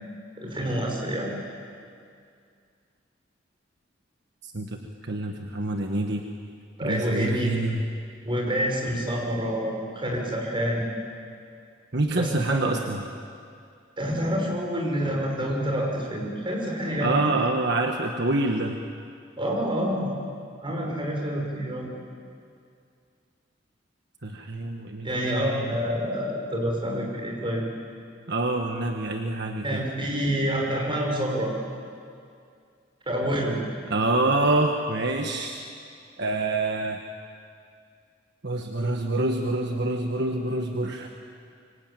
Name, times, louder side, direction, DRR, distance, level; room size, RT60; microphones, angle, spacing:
voice 1, 0.4-1.3 6.8-7.5 8.2-10.9 12.1-12.7 14.0-17.3 19.4-20.1 20.6-21.9 25.0-27.6 29.6-31.5 33.1-33.6, equal, 25° right, -1 dB, 6.3 m, -27 dB
voice 2, 4.4-4.8 5.0-6.2 6.8-7.8 11.9-13.0 17.0-18.8 24.2-25.6 28.3-29.8 33.9-35.6 36.2-37.0 38.4-41.1, right 2 dB, 60° right, 3 dB, 1.5 m, -26 dB
25.5 x 23.5 x 9.2 m, 2.3 s
head